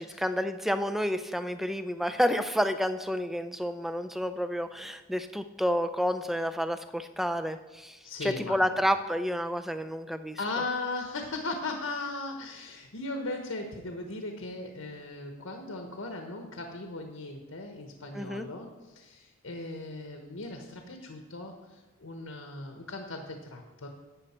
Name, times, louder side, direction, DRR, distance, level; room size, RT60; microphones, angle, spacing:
voice 1, 0.0-10.4 18.1-18.5, equal, ahead, 10 dB, 0.4 m, -30 dB
voice 2, 8.0-8.6 10.4-23.9, left 2 dB, 80° left, 3 dB, 1.2 m, -38 dB
11.5 x 8.6 x 4.4 m, 1.2 s
head